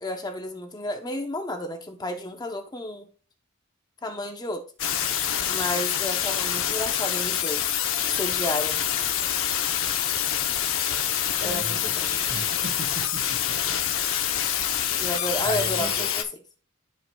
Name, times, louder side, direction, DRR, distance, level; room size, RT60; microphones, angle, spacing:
voice 1, 0.0-3.1 4.0-4.6 5.5-7.8 8.1-8.9 11.4-12.1 15.0-16.3, left 1 dB, 20° left, 0.7 m, -31 dB
sound 1, 4.8-16.2, left 9 dB, 65° left, 0.8 m, -26 dB
voice 2, 11.4-13.6 15.4-16.1, right 2 dB, 45° right, 1.0 m, -36 dB
12.5 x 4.6 x 2.3 m
head